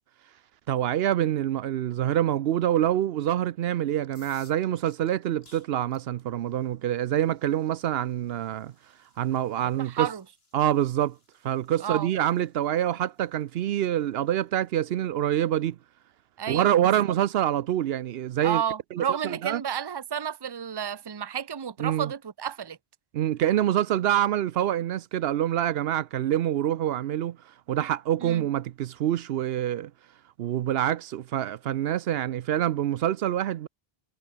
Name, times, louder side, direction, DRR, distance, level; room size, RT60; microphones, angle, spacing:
voice 1, 0.7-8.7 9.2-10.1 10.5-11.2 11.4-15.8 16.5-18.6 18.9-19.6 21.8-22.1 23.1-27.4 27.7-29.9 30.4-33.7, right 11 dB, 75° right, 0.8 m, -26 dB
sound 1, 4.0-15.7, left 2 dB, 75° left, 3.9 m, -63 dB
voice 2, 9.8-10.2 11.8-12.1 16.4-16.8 18.4-22.8 28.2-28.5, right 8 dB, 30° right, 0.7 m, -31 dB
omnidirectional pair, 1.0 m